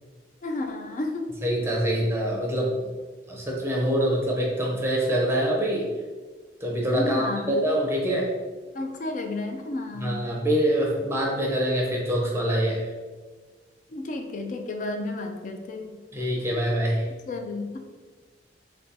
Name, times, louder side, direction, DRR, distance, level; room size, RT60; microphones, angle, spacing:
voice 1, 0.4-1.3 1.8-1.9 6.9-7.6 8.7-10.3 13.9-16.0 17.3-17.8, left 2 dB, 45° left, 5 dB, 0.3 m, -32 dB
voice 2, 1.4-2.9 3.3-5.9 6.6-8.3 10.0-12.9 16.1-17.1, equal, 15° right, -2 dB, 0.6 m, -25 dB
3.9 x 2.3 x 2.6 m, 1.4 s
head